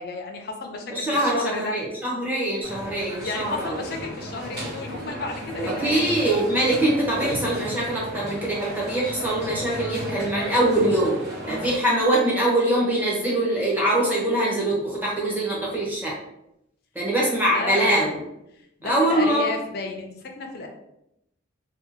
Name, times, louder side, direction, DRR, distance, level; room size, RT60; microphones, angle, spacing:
voice 1, 0.0-1.8 3.2-6.3 17.5-18.1 18.8-20.7, left 3 dB, 50° left, 3 dB, 0.4 m, -32 dB
voice 2, 0.9-3.8 5.8-11.2 11.5-16.1 16.9-18.2 18.8-19.5, right 1 dB, 10° right, -5 dB, 0.7 m, -23 dB
sound 1, 2.6-11.8, equal, 50° right, 1.2 m, -34 dB
2.6 x 2.3 x 2.6 m, 0.81 s
head